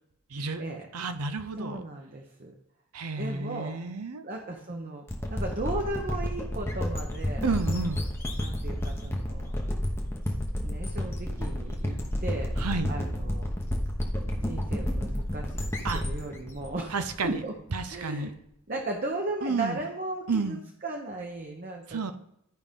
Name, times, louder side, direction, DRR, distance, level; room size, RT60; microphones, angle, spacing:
voice 1, 0.3-0.6 0.9-1.8 2.9-4.2 7.4-8.0 12.6-12.9 15.8-16.0 16.9-17.4 17.7-18.3 19.4-19.8 20.3-20.7 21.9-22.2, right 4 dB, 90° right, 9 dB, 0.8 m, -31 dB
voice 2, 1.6-2.5 3.2-3.7 4.2-7.8 8.4-9.5 10.6-12.5 12.9-13.5 14.2-17.5 17.9-18.3 18.7-20.6 20.8-22.2, right 2 dB, 40° right, 1 dB, 0.9 m, -36 dB
sound 1, 5.1-17.7, left 1 dB, 10° left, 0.9 m, -31 dB
13.0 x 5.0 x 3.7 m, 0.77 s
head